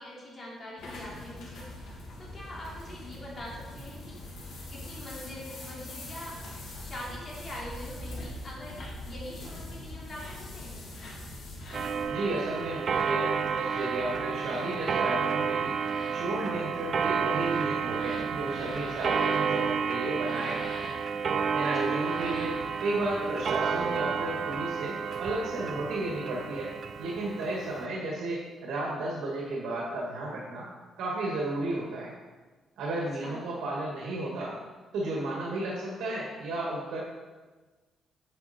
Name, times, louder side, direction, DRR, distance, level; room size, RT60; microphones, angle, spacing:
voice 1, 0.0-1.6 2.2-4.2 4.7-6.3 6.8-10.9 21.6-22.0 33.0-33.5, left 1 dB, 30° left, -4 dB, 2.9 m, -43 dB
sound 1, 0.8-12.0, left 1 dB, 75° left, 2.7 m, -42 dB
sound 2, 8.1-8.3 8.7-8.9 10.0-10.4 10.9-11.2 11.6-11.9 12.8-13.1 13.6-13.9 14.4-14.7 15.7-16.1 17.2-19.4 20.2-21.0 21.8-22.6, left 2 dB, 50° left, 2.9 m, -46 dB
Clock, 11.7-27.8, right 6 dB, 45° right, 0.5 m, -30 dB
voice 2, 12.1-15.8 16.1-20.7 21.5-26.7 27.0-30.7 31.0-32.1 32.8-34.5 34.9-37.0, right 2 dB, 85° right, -3 dB, 1.8 m, -33 dB
8.6 x 7.7 x 4.3 m, 1.3 s
cardioid pair, 125°, 0 cm